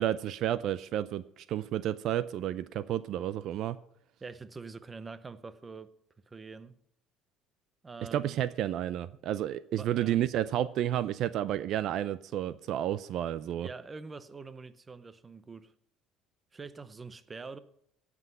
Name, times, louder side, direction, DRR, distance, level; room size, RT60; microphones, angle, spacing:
voice 1, 0.0-3.8 8.1-13.7, right 11 dB, 55° right, 0.5 m, -31 dB
voice 2, 4.2-5.9 6.3-6.7 7.8-8.4 9.7-10.2 13.6-15.7 16.5-17.6, right 4 dB, 20° right, 0.7 m, -45 dB
17.0 x 6.1 x 6.7 m
cardioid pair, 145°, 0 cm